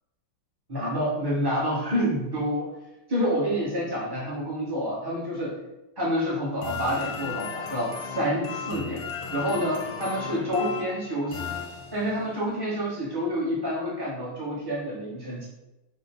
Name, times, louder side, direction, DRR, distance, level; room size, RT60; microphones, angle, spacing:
voice 1, 0.7-2.7 3.1-5.5 6.0-9.0 9.3-11.5 11.9-15.4, equal, 20° right, -7 dB, 0.6 m, -28 dB
sound 1, 6.6-12.3, left 6 dB, 80° left, 1.3 m, -36 dB
5.0 x 2.1 x 3.5 m, 0.96 s
omnidirectional pair, 2.2 m